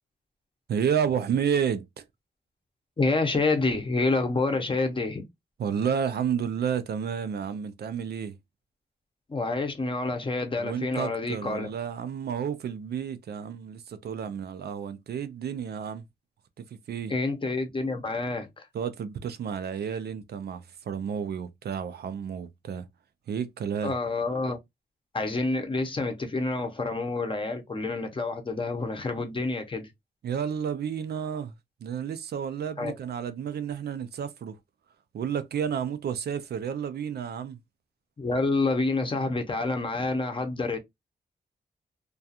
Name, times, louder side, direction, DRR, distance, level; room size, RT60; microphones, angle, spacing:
voice 1, 0.7-2.0 5.6-8.4 10.6-16.1 16.6-17.1 18.7-22.9 23.3-23.9 30.2-31.5 31.8-34.6 35.1-37.6, right 7 dB, 70° right, 0.4 m, -31 dB
voice 2, 3.0-5.2 9.3-11.7 17.1-18.7 23.8-24.6 25.1-29.9 32.8-32.9 38.2-40.8, left 3 dB, 30° left, 0.7 m, -28 dB
2.4 x 2.2 x 2.7 m
wide cardioid pair, 120°, 17 cm